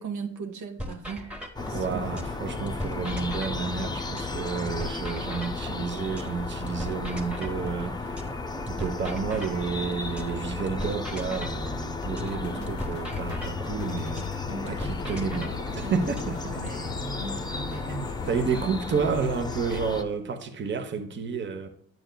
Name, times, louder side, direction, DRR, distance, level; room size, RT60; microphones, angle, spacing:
voice 1, 0.0-2.3 12.4-12.7 16.4-18.1 18.5-18.8, right 6 dB, 75° right, 5 dB, 0.9 m, -39 dB
sound 1, 0.8-2.4 2.7-6.4 6.7-10.4 10.7-14.4 14.7-16.8, equal, 5° right, 1.1 m, -39 dB
sound 2, 1.6-20.0, left 3 dB, 15° left, 0.6 m, -34 dB
voice 2, 1.7-8.2 8.7-16.6 17.8-18.0 18.3-21.7, right 5 dB, 40° right, 6 dB, 0.9 m, -31 dB
sound 3, 12.2-18.6, left 6 dB, 70° left, 0.7 m, -39 dB
9.2 x 6.2 x 2.2 m, 0.66 s
cardioid pair, 90°, 30 cm